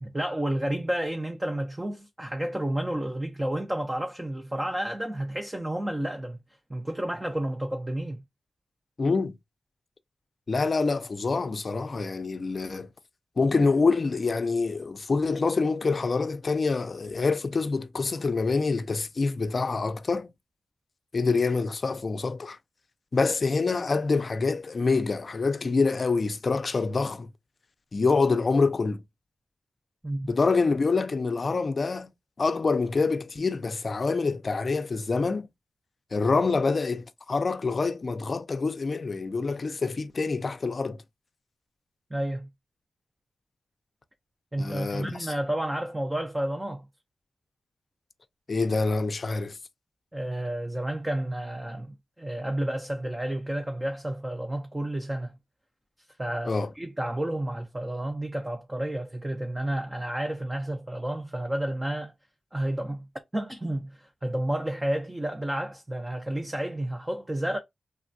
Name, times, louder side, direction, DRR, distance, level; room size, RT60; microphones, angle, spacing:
voice 1, 0.0-6.4 6.7-8.2 30.0-30.4 42.1-42.5 44.5-46.9 50.1-55.4 56.2-62.1 62.5-63.1 63.3-67.6, right 1 dB, 20° right, 0.5 m, -31 dB
voice 2, 9.0-9.4 10.5-12.9 13.4-20.3 21.1-22.6 23.1-27.3 27.9-29.0 30.3-32.1 32.4-35.5 36.1-41.0 44.6-45.3 48.5-49.6 56.5-56.7, left 4 dB, 50° left, 0.4 m, -26 dB
3.3 x 2.2 x 2.5 m
cardioid pair, 75°, 0 cm